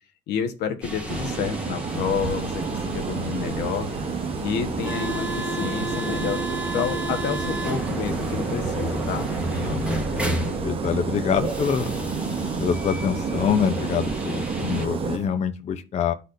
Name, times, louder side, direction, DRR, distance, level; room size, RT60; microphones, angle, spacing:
voice 1, 0.3-3.9 4.4-9.3, left 7 dB, 80° left, 5 dB, 1.2 m, -29 dB
sound 1, 0.8-14.9, equal, 5° right, 1.3 m, -32 dB
sound 2, 1.1-15.2, right 5 dB, 35° right, 0.9 m, -30 dB
sound 3, 1.9-15.3, right 6 dB, 75° right, 1.1 m, -39 dB
voice 2, 9.6-10.3 10.6-11.9 12.6-16.1, left 7 dB, 40° left, 7 dB, 0.6 m, -25 dB
11.5 x 4.1 x 2.6 m, 0.33 s
cardioid pair, 110°, 17 cm